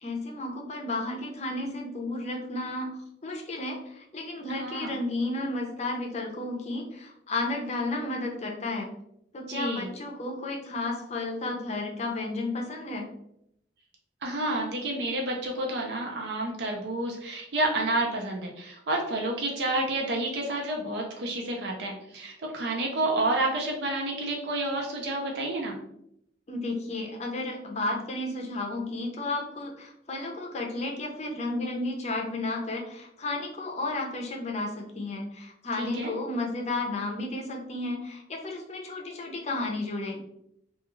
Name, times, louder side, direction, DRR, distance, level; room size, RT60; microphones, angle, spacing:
voice 1, 0.0-2.9 3.2-8.9 9.3-13.1 26.5-40.2, left 2 dB, 35° left, 1 dB, 0.5 m, -32 dB
voice 2, 4.5-5.0 9.4-9.9 14.2-25.8 35.8-36.1, right 2 dB, 70° right, 0 dB, 0.5 m, -30 dB
2.3 x 2.3 x 2.9 m, 0.76 s
head